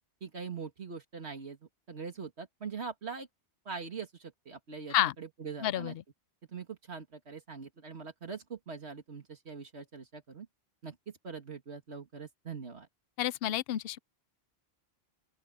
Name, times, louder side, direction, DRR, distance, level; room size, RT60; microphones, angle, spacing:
voice 1, 0.2-1.6 1.9-3.3 3.7-6.0 6.5-10.5 10.8-12.9, right 5 dB, 80° right, 2.3 m, -42 dB
voice 2, 5.6-5.9 13.2-14.0, left 13 dB, 70° left, 0.8 m, -29 dB
open air
omnidirectional pair, 1.1 m